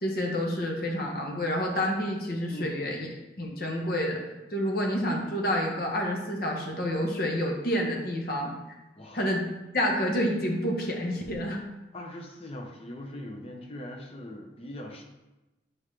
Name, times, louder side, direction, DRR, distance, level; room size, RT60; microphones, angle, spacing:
voice 1, 0.0-3.1 3.4-4.2 4.5-8.6 9.1-9.5 9.7-11.6, equal, 55° left, 0 dB, 1.2 m, -28 dB
voice 2, 2.5-3.0 9.0-9.2 11.9-15.0, left 1 dB, 35° left, 2 dB, 0.9 m, -41 dB
8.0 x 4.8 x 3.2 m, 1.0 s
head